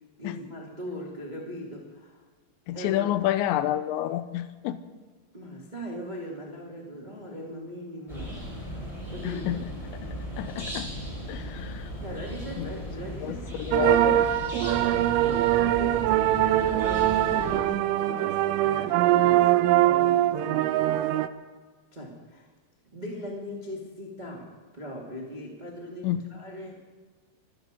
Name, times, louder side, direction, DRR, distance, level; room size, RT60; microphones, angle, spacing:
voice 1, 0.2-2.2 2.7-3.3 5.3-8.8 9.1-9.6 12.0-14.4 14.8-19.5 19.8-21.0 21.9-22.5 22.8-26.7, equal, 65° right, -1 dB, 0.4 m, -40 dB
voice 2, 2.7-4.8 9.2-9.6 10.4-10.9 11.3-11.9 12.6-12.7 13.2-14.3 26.0-26.2, left 13 dB, 80° left, 12 dB, 2.9 m, -29 dB
sound 1, 8.1-17.6, equal, 5° left, 4.2 m, -37 dB
sound 2, 13.7-21.3, right 14 dB, 90° right, 3.1 m, -22 dB
24.5 x 11.5 x 5.2 m, 1.4 s
omnidirectional pair, 5.4 m